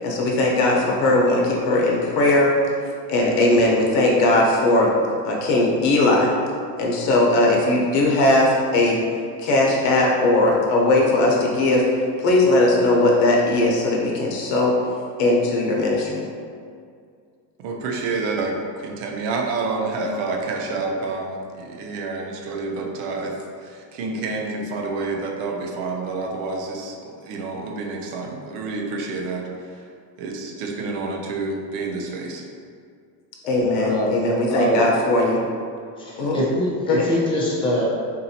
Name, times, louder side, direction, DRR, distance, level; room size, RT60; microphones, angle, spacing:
voice 1, 0.0-2.5 3.1-4.9 5.2-6.3 6.8-9.0 9.4-11.8 12.2-14.7 15.2-16.2 33.5-35.4 36.2-36.4 36.9-37.0, left 2 dB, 75° left, -2 dB, 1.0 m, -19 dB
voice 2, 17.6-23.4 23.6-29.8 30.2-32.4, right 3 dB, 80° right, 1 dB, 0.7 m, -28 dB
voice 3, 33.4-34.1 34.5-34.8 36.0-37.8, equal, 10° left, -6 dB, 0.4 m, -24 dB
4.1 x 2.7 x 2.8 m, 2.2 s
cardioid pair, 155°, 47 cm